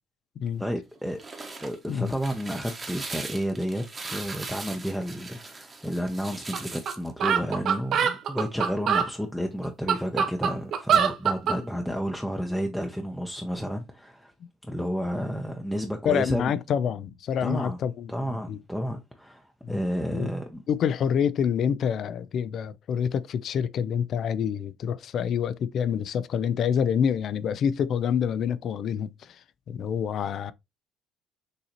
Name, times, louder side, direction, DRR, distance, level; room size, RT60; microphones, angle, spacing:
voice 1, 0.6-1.2 1.6-14.3 14.6-16.6 17.4-17.8 18.1-20.6, equal, ahead, 0.6 m, -31 dB
sound 1, 1.0-7.1, right 3 dB, 25° right, 1.0 m, -40 dB
sound 2, 6.5-6.6 6.9-7.0 7.2-9.1 9.6-11.6, right 7 dB, 55° right, 0.8 m, -23 dB
voice 2, 16.0-18.6 19.6-19.7 20.1-20.3 20.7-29.4 29.7-30.5, left 8 dB, 50° left, 0.4 m, -27 dB
6.5 x 2.7 x 2.9 m
cardioid pair, 120°, 0 cm